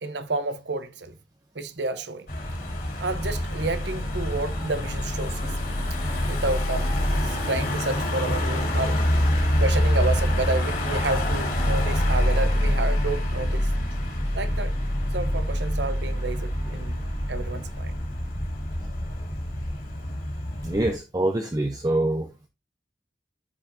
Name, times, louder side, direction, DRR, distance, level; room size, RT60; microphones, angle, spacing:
voice 1, 0.0-1.2 1.5-2.3 3.0-5.5 6.3-9.0 9.6-13.7 14.3-14.7 15.1-17.9, right 3 dB, 65° right, 0.9 m, -30 dB
Car passing by / Engine, 2.3-20.9, left 1 dB, 50° left, 3.5 m, -26 dB
voice 2, 20.6-22.3, right 1 dB, 20° right, 0.7 m, -25 dB
12.0 x 5.1 x 2.6 m
head